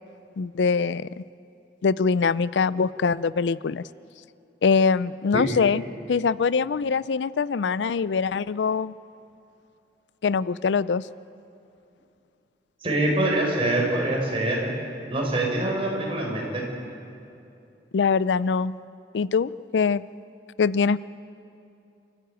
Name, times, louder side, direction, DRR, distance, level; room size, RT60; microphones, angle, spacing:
voice 1, 0.4-1.2 1.8-3.8 4.6-5.8 6.1-9.0 10.2-11.1 17.9-18.7 19.1-20.0 20.6-21.0, left 5 dB, 85° left, 18 dB, 0.4 m, -23 dB
voice 2, 12.8-14.7 15.1-16.6, right 1 dB, 35° right, -1 dB, 5.6 m, -25 dB
28.5 x 14.0 x 9.1 m, 2.7 s
head